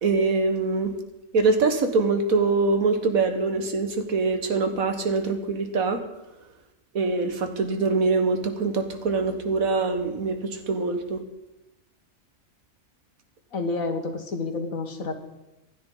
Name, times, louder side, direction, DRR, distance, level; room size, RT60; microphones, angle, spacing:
voice 1, 0.0-0.9 1.3-6.0 6.9-11.2, right 3 dB, 90° right, 7 dB, 1.8 m, -24 dB
voice 2, 13.5-15.1, left 3 dB, 80° left, 5 dB, 1.9 m, -29 dB
26.0 x 9.6 x 3.9 m, 0.96 s
omnidirectional pair, 1.4 m